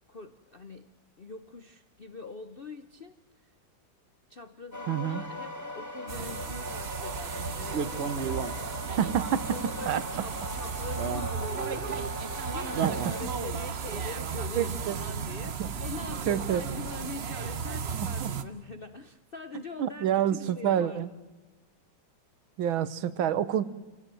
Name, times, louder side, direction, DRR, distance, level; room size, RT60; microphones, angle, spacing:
voice 1, 0.1-3.6 4.3-9.0 9.5-12.0 12.5-21.1, left 3 dB, 55° left, 9 dB, 0.6 m, -43 dB
sound 1, 4.7-13.2, left 1 dB, 10° left, 2.0 m, -40 dB
voice 2, 4.9-5.2 9.0-9.4 9.9-10.0 12.8-12.9 14.6-15.0 15.6-15.7 16.3-16.6 17.9-18.3 19.5-21.1 22.6-23.6, right 10 dB, 80° right, 15 dB, 1.8 m, -28 dB
sound 2, 6.1-18.4, right 6 dB, 45° right, 0.9 m, -34 dB
27.0 x 17.5 x 7.7 m, 1.2 s
omnidirectional pair, 2.2 m